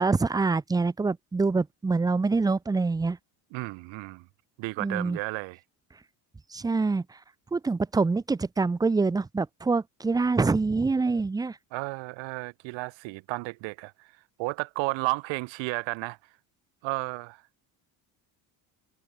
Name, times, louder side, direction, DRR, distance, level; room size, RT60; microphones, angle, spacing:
voice 1, 0.0-3.2 4.8-5.2 6.5-7.0 7.5-11.6, right 4 dB, 10° right, 0.6 m, -25 dB
voice 2, 3.5-4.3 4.6-5.6 11.7-14.1 14.4-16.2 16.8-17.4, right 25 dB, 80° right, 2.3 m, -33 dB
cardioid pair, 145°, 44 cm